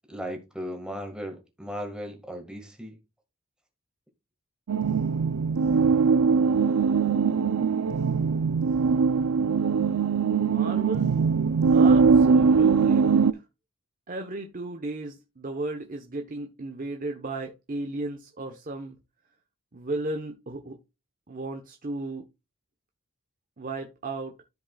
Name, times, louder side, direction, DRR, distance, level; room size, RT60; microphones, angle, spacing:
voice 1, 0.1-3.0, equal, 5° right, 1.8 m, -36 dB
sound 1, 4.7-13.3, right 5 dB, 85° right, 0.5 m, -21 dB
voice 2, 10.4-11.1 11.7-13.2 14.1-19.0 19.7-20.8 21.3-22.3 23.6-24.3, right 2 dB, 40° right, 1.0 m, -35 dB
13.5 x 5.2 x 2.3 m
head